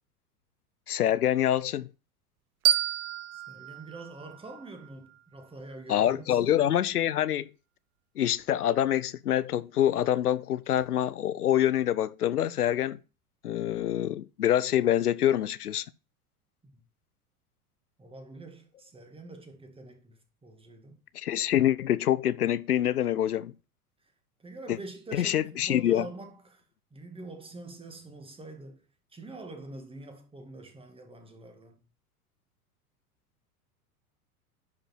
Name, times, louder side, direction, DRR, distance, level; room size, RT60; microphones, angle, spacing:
voice 1, 0.9-1.9 5.9-7.5 8.2-13.0 13.4-15.8 21.1-23.5 25.1-26.0, left 11 dB, 85° left, 0.6 m, -26 dB
sound 1, 2.6-5.4, right 13 dB, 70° right, 1.0 m, -30 dB
voice 2, 3.3-6.6 16.7-16.8 18.0-21.0 24.4-26.6 26.9-28.8 29.1-31.8, right 2 dB, 10° right, 2.1 m, -45 dB
10.5 x 5.2 x 4.4 m
figure-of-eight pair, 90°, 45 cm